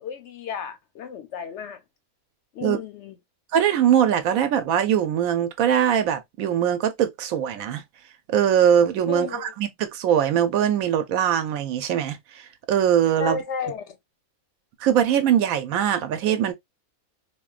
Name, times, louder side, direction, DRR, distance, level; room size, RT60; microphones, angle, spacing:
voice 1, 0.0-1.8 2.5-3.1 9.1-9.5 13.2-14.0, left 7 dB, 65° left, 0.8 m, -33 dB
voice 2, 3.5-7.8 8.3-12.4 12.7-13.4 14.8-16.5, right 9 dB, 75° right, 1.0 m, -21 dB
4.1 x 2.2 x 2.3 m
omnidirectional pair, 1.5 m